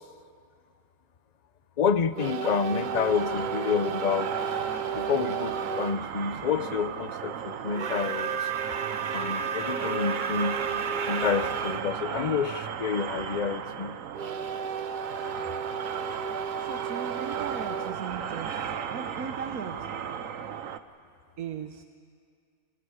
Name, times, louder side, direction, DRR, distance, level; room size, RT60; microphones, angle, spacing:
voice 1, 1.8-4.3 4.8-8.3 9.1-10.6 11.1-13.9, left 6 dB, 40° left, 12 dB, 0.7 m, -28 dB
sound 1, 2.1-6.0 7.7-11.8 14.1-19.0, right 6 dB, 45° right, 0.7 m, -33 dB
sound 2, 2.8-20.8, right 8 dB, 70° right, 1.2 m, -36 dB
voice 2, 16.6-19.9 21.4-21.8, right 7 dB, 90° right, 6 dB, 1.4 m, -38 dB
29.5 x 27.0 x 4.9 m, 2.2 s
omnidirectional pair, 1.5 m